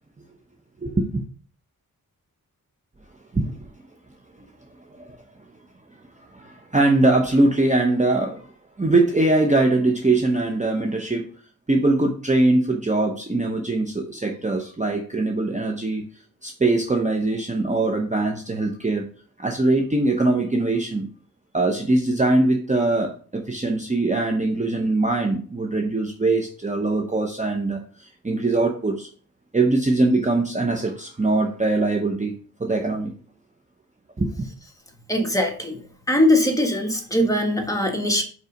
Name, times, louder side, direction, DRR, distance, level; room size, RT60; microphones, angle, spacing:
voice 1, 0.8-1.2 3.3-3.5 4.9-5.1 6.3-8.5 8.8-11.3 11.7-16.0 16.4-19.0 19.4-21.1 21.5-29.1 29.5-32.3 32.6-33.1 34.2-34.5, right 2 dB, 20° right, 2 dB, 0.8 m, -22 dB
voice 2, 35.1-35.8 36.1-38.2, left 1 dB, 10° left, 2 dB, 1.5 m, -21 dB
5.6 x 4.7 x 5.1 m, 0.42 s
wide cardioid pair, 110°, 35 cm